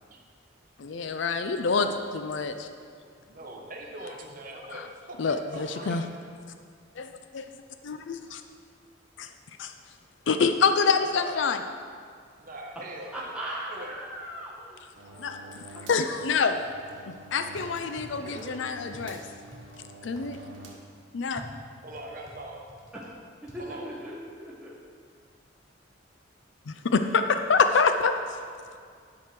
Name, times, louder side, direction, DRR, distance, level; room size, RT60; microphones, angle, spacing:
voice 1, 0.8-1.9 2.2-2.7 4.7-4.9 5.2-6.0 7.0-7.4 7.8-8.4 9.2-9.3 9.6-9.7 10.3-11.6 15.2-15.4 15.9-16.6 17.3-18.2 18.7-19.2 20.0-20.4 21.1-21.4 26.7-28.1, left 5 dB, 70° left, 8 dB, 0.5 m, -26 dB
voice 2, 3.2-6.1 10.8-11.5 12.4-13.4 13.7-14.0 18.2-18.6 21.8-22.6 23.6-24.0, right 1 dB, 45° right, 0 dB, 1.2 m, -42 dB
voice 3, 13.1-14.8 15.1-15.4 16.3-16.4 23.5-24.7, right 1 dB, 5° right, -6 dB, 1.0 m, -38 dB
sound 1, 14.9-20.7, right 2 dB, 80° right, 1.6 m, -47 dB
sound 2, 16.6-17.2 17.5-18.5 18.9-19.6 20.2-20.3 21.4-23.1 23.5-23.6, equal, 20° left, 1.3 m, -48 dB
10.5 x 4.8 x 5.9 m, 2.1 s
head